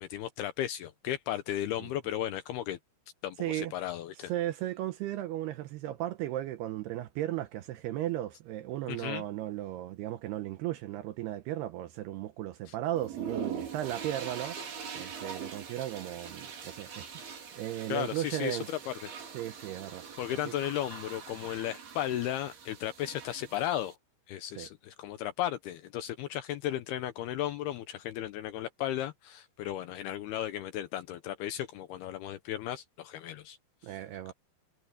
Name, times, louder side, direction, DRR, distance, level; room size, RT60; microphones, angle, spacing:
voice 1, 0.0-2.8 3.2-4.3 8.9-9.2 12.7-12.8 17.9-19.1 20.2-24.0 24.3-33.6 33.9-34.0, left 12 dB, 75° left, 2.4 m, -35 dB
voice 2, 3.4-3.7 4.3-14.6 15.0-18.7 19.3-20.0 20.5-20.6 24.6-24.7 33.8-34.3, right 13 dB, 75° right, 2.5 m, -36 dB
sound 1, 13.0-23.9, right 7 dB, 60° right, 5.8 m, -43 dB
omnidirectional pair, 5.3 m